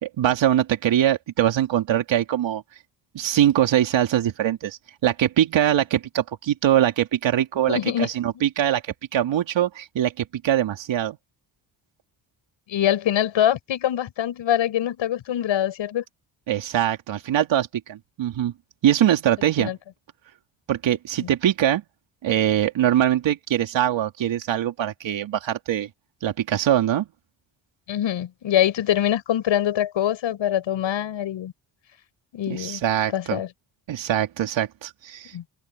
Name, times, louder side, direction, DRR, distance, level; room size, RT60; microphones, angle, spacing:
voice 1, 0.0-2.6 3.1-11.2 16.5-18.5 18.8-19.7 20.7-21.8 22.2-25.9 26.2-27.0 32.5-33.4 33.9-35.5, right 11 dB, 70° right, 3.2 m, -22 dB
voice 2, 7.7-8.1 8.3-8.4 12.7-16.0 19.6-19.8 21.2-21.3 27.9-31.5 32.3-32.8 33.1-33.5 35.3-35.5, left 11 dB, 70° left, 6.9 m, -24 dB
supercardioid pair, 55°, 46 cm